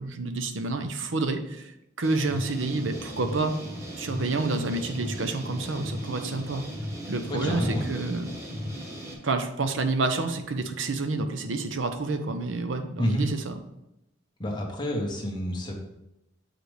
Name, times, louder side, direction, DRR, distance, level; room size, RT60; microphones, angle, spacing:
voice 1, 0.0-1.7 2.0-3.5 3.9-6.6 7.1-8.3 9.2-13.6, right 3 dB, 75° right, 7 dB, 0.8 m, -29 dB
sound 1, 2.0-9.1, equal, 15° right, 1.3 m, -37 dB
voice 2, 7.4-7.9 13.0-13.2 14.4-15.8, equal, 25° left, -1 dB, 1.3 m, -28 dB
7.6 x 4.9 x 3.3 m, 0.87 s
head